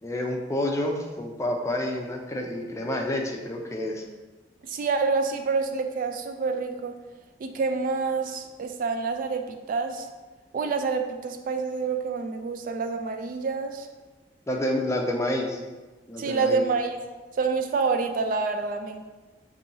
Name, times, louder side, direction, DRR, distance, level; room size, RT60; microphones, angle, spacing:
voice 1, 0.0-4.0 14.5-15.6 16.1-16.6, left 1 dB, 15° left, 1 dB, 0.4 m, -29 dB
voice 2, 4.7-6.9 7.4-10.1 10.5-13.9 16.2-17.0 17.4-19.1, right 4 dB, 50° right, 6 dB, 0.3 m, -27 dB
5.7 x 2.7 x 2.7 m, 1.2 s
head